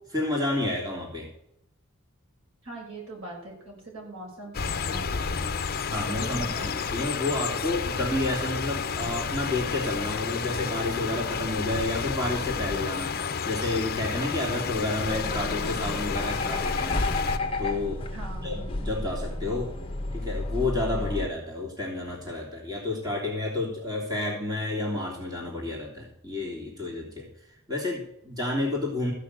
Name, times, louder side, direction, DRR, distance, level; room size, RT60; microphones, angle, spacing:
voice 1, 0.1-1.3 5.8-13.1 13.4-17.0 17.6-18.0 18.4-19.7 20.1-27.3 27.7-29.1, left 2 dB, 20° right, -3 dB, 3.1 m, -30 dB
voice 2, 2.6-5.6 6.2-6.7 18.1-18.7, right 2 dB, 75° right, -1 dB, 6.4 m, -41 dB
sound 1, 4.5-17.4, left 6 dB, 45° left, 0.7 m, -31 dB
sound 2, 15.1-21.3, left 2 dB, 25° left, 1.2 m, -31 dB
15.0 x 6.2 x 8.1 m, 0.78 s
head